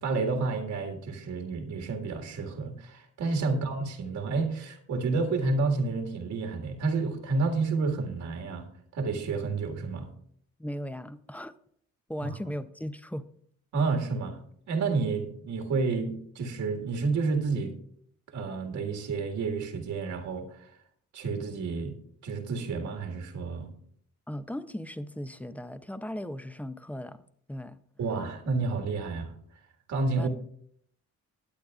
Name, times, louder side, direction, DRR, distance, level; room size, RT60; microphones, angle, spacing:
voice 1, 0.0-8.7 8.9-10.1 12.2-12.4 13.7-14.4 14.7-17.7 18.3-20.7 21.1-22.0 22.2-23.7 28.0-29.3 29.9-30.3, right 4 dB, 75° right, 1.9 m, -30 dB
voice 2, 10.6-11.5 12.1-13.3 24.3-27.8 30.2-30.3, equal, 5° left, 0.6 m, -37 dB
20.0 x 8.5 x 2.4 m
cardioid pair, 90°, 30 cm